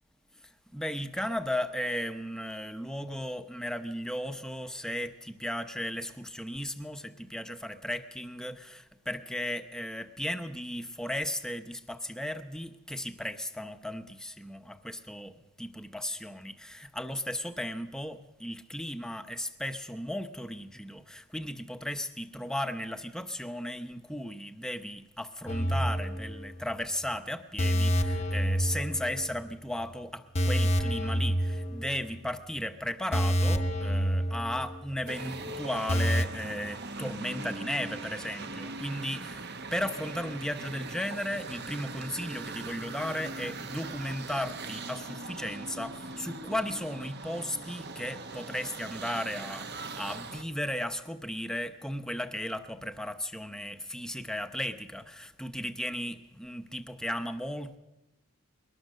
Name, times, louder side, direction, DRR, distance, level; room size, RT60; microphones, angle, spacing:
voice 1, 0.4-57.8, left 1 dB, 5° left, 8 dB, 0.8 m, -35 dB
sound 1, 25.5-26.7 27.0-27.2 27.6-29.5 29.8-29.9 30.4-32.3 32.6-32.7 33.1-35.1 35.3-35.4 35.9-36.3, equal, 30° left, 0.9 m, -28 dB
sound 2, 35.1-50.4, right 3 dB, 50° right, 1.1 m, -41 dB
22.0 x 18.5 x 6.4 m, 1.0 s
head